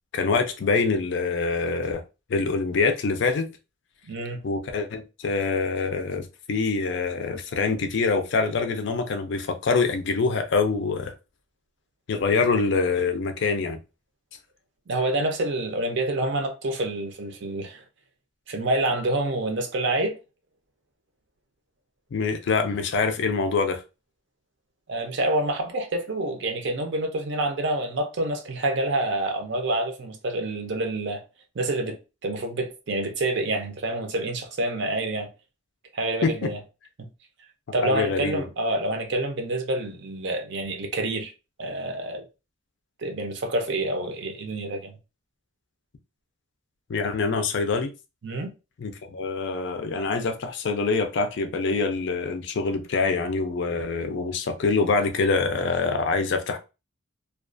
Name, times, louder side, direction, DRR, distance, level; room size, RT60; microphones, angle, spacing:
voice 1, 0.1-2.0 2.3-3.5 4.4-11.1 12.1-13.8 22.1-23.8 36.2-36.5 37.8-38.4 46.9-47.9 48.8-56.6, left 4 dB, 55° left, 0.4 m, -25 dB
voice 2, 4.0-4.4 14.9-17.8 18.5-20.1 24.9-31.2 31.5-35.3 35.9-36.6 37.7-41.3 41.6-42.2 43.0-45.0 48.2-48.5, right 2 dB, 55° right, 0.5 m, -27 dB
2.3 x 2.3 x 2.4 m
head